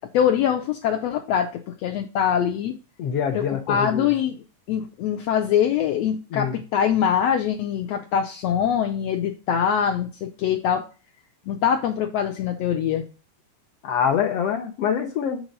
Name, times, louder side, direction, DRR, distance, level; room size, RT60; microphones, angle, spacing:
voice 1, 0.1-2.8 3.3-10.8 11.5-13.0, left 8 dB, 90° left, 4 dB, 1.4 m, -23 dB
voice 2, 3.0-4.1 6.3-6.5 13.8-15.4, left 7 dB, 75° left, 3 dB, 1.4 m, -25 dB
7.2 x 3.1 x 5.2 m, 0.33 s
omnidirectional pair, 3.7 m